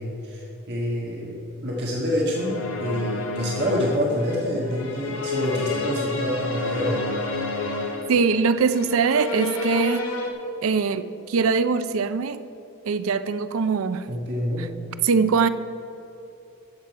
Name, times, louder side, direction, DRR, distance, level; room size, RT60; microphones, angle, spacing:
voice 1, 0.0-7.1 14.1-14.7, equal, 55° right, -3 dB, 1.5 m, -27 dB
sound 1, 2.4-10.3, left 2 dB, 80° left, 1.1 m, -30 dB
voice 2, 8.1-10.1 10.6-12.4 12.9-14.1 15.0-15.5, right 5 dB, 75° right, 13 dB, 0.4 m, -22 dB
12.0 x 7.5 x 4.7 m, 2.8 s
head